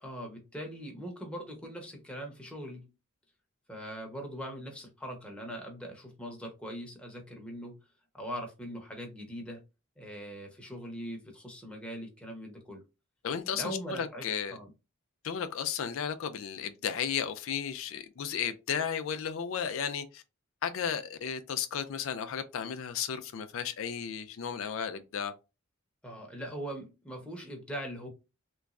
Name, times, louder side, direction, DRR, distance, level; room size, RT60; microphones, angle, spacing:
voice 1, 0.0-2.9 3.7-7.8 8.1-9.6 10.0-12.8 13.5-14.3 14.5-14.7 26.0-28.1, equal, 5° left, 0.9 m, -41 dB
voice 2, 13.2-14.6 15.2-20.2 20.6-25.3, left 7 dB, 65° left, 0.4 m, -34 dB
3.4 x 3.0 x 2.4 m
head